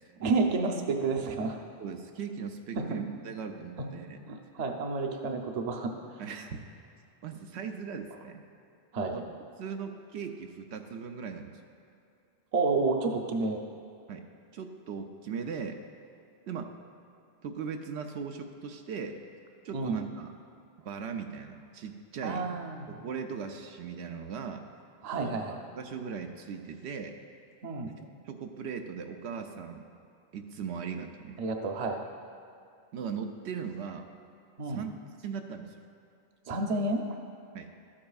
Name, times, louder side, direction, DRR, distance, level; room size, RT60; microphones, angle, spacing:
voice 1, 0.2-1.6 2.8-2.9 3.8-3.9 4.3-6.2 8.9-9.2 12.5-13.6 19.7-20.0 22.2-22.9 25.0-25.6 27.6-27.9 31.4-32.0 34.6-34.8 36.5-37.2, right 3 dB, 45° right, 3 dB, 0.7 m, -30 dB
voice 2, 1.8-4.2 6.2-6.6 7.2-8.4 9.1-9.2 9.6-11.6 14.1-14.3 14.5-15.8 16.5-16.7 17.4-19.2 19.6-20.3 20.8-22.5 22.9-24.7 25.1-25.4 25.8-27.2 28.0-29.9 30.3-31.4 32.9-34.0 34.7-34.9 35.2-35.8 37.5-37.7, right 6 dB, 80° right, 5 dB, 0.9 m, -38 dB
12.5 x 8.7 x 2.4 m, 2.5 s
omnidirectional pair, 1.1 m